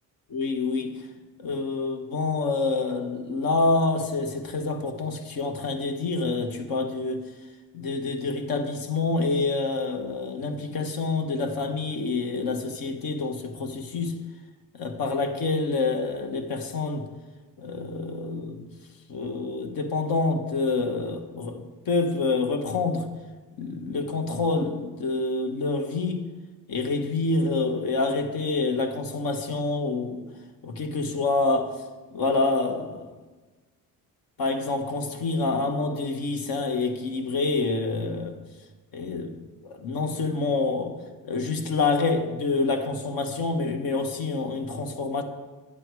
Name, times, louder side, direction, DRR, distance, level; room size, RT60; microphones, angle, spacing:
voice 1, 0.3-0.9 1.4-7.2 7.7-14.1 14.7-17.1 17.6-18.7 19.1-23.1 23.6-26.3 26.7-30.2 30.6-31.8 32.1-33.1 34.4-38.4 38.9-39.4 39.6-41.0 41.2-45.2, left 3 dB, 70° left, 1.6 m, -27 dB
11.0 x 10.5 x 4.8 m
cardioid pair, 90°, 36 cm